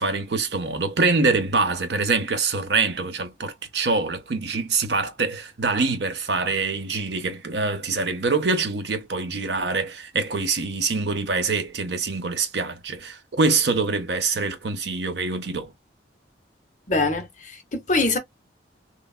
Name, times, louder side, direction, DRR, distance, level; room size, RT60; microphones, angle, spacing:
voice 1, 0.0-15.7, right 4 dB, 65° right, 0.7 m, -25 dB
voice 2, 16.9-18.2, left 3 dB, 40° left, 0.7 m, -24 dB
3.2 x 2.3 x 2.3 m
head